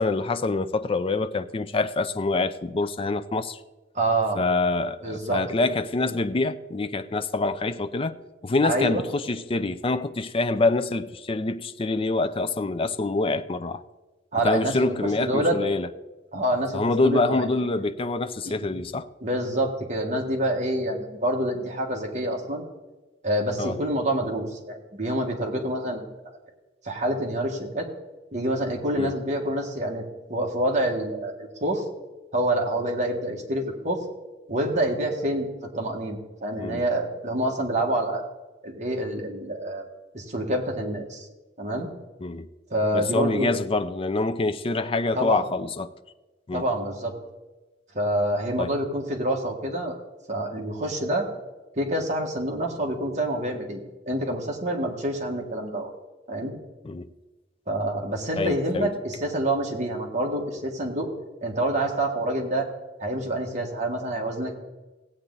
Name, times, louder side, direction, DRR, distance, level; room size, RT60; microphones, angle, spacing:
voice 1, 0.0-3.6 4.4-8.1 8.4-13.8 14.4-15.9 16.7-19.1 23.6-23.8 29.0-29.1 36.6-36.8 42.2-42.5 42.9-45.9 46.5-46.6 48.6-48.7 56.9-57.1 58.4-58.9, left 3 dB, 30° left, 0.4 m, -26 dB
voice 2, 3.9-4.4 5.0-5.4 8.6-9.0 14.3-15.6 16.3-17.5 18.6-18.7 19.2-22.6 23.2-26.1 26.8-27.9 28.3-31.8 32.3-34.0 34.5-35.5 35.7-38.2 38.6-39.8 40.1-41.2 41.6-41.9 42.7-43.5 45.1-45.4 46.5-47.1 47.9-50.0 50.3-51.3 51.8-55.9 56.3-56.5 57.7-61.1 61.4-62.7 63.0-64.5, right 1 dB, 40° right, 1.7 m, -27 dB
16.0 x 8.6 x 4.0 m
head